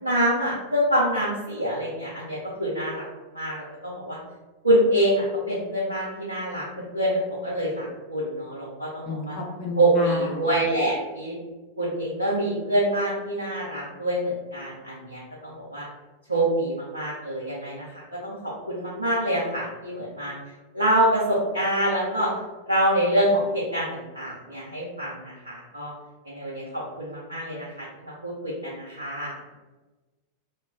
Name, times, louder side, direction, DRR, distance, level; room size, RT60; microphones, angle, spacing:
voice 1, 0.0-3.0 3.3-4.2 4.6-9.3 9.8-11.3 11.8-15.9 16.3-18.4 18.7-20.4 20.7-22.3 22.7-25.9 26.3-27.7 28.0-29.3, right 1 dB, 85° right, -6 dB, 0.5 m, -26 dB
voice 2, 9.0-10.4, left 3 dB, 40° left, -2 dB, 0.7 m, -31 dB
2.2 x 2.0 x 3.5 m, 1.2 s
figure-of-eight pair, 90°, 0 cm